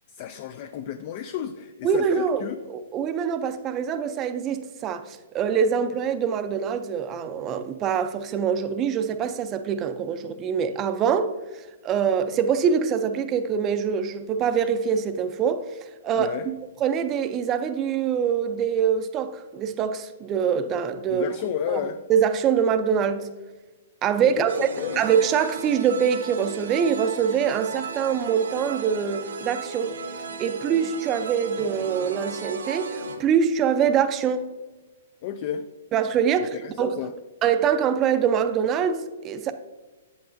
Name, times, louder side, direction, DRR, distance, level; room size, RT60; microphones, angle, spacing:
voice 1, 0.1-2.6 16.1-16.5 21.1-22.0 24.2-25.0 35.2-35.7 36.6-37.1, left 9 dB, 40° left, 0.3 m, -32 dB
voice 2, 1.8-11.3 11.8-15.7 16.0-16.5 16.8-21.3 21.7-21.8 22.1-23.3 24.0-24.7 25.0-29.9 30.4-34.5 35.9-37.1 37.4-39.5, right 7 dB, 25° right, 0.5 m, -24 dB
sound 1, 24.5-33.2, right 4 dB, 85° right, 1.2 m, -35 dB
8.2 x 7.8 x 2.6 m
hypercardioid pair, 150°, 0 cm